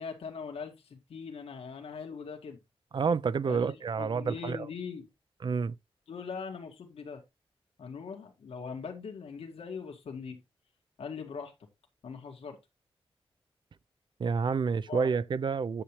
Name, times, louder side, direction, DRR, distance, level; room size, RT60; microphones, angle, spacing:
voice 1, 0.0-2.6 3.5-3.7 4.0-5.0 6.1-7.2 7.8-10.4 11.0-11.5 12.0-12.6 14.9-15.0, left 5 dB, 90° left, 2.0 m, -41 dB
voice 2, 2.9-4.7 5.4-5.7 14.2-15.8, right 5 dB, 50° right, 0.5 m, -29 dB
10.0 x 7.2 x 3.1 m
wide cardioid pair, 115°, 10 cm